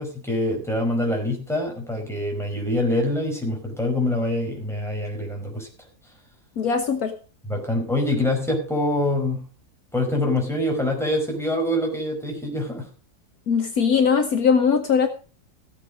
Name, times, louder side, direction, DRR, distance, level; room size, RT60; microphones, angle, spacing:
voice 1, 0.0-5.7 7.5-9.4 9.9-12.9, left 1 dB, ahead, 0 dB, 5.1 m, -25 dB
voice 2, 6.6-7.1 13.5-15.1, left 6 dB, 65° left, 6 dB, 1.6 m, -20 dB
15.5 x 8.6 x 5.1 m, 0.37 s
omnidirectional pair, 1.7 m